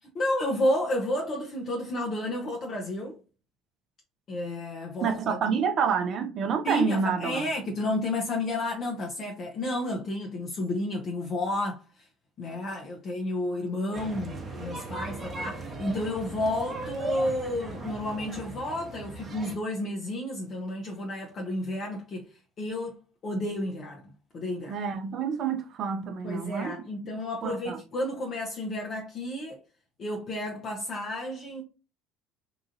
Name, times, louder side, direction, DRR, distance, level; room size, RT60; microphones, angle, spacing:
voice 1, 0.1-3.2 4.3-5.6 6.6-12.1 12.4-22.9 23.2-24.8 26.2-29.6 30.0-31.6, left 1 dB, 45° left, 0.7 m, -31 dB
voice 2, 5.0-7.5 24.7-26.8 27.4-27.8, right 6 dB, 50° right, 0.5 m, -28 dB
sound 1, 13.9-19.6, right 3 dB, 30° right, 0.9 m, -38 dB
2.9 x 2.4 x 2.5 m
hypercardioid pair, 70°, 0 cm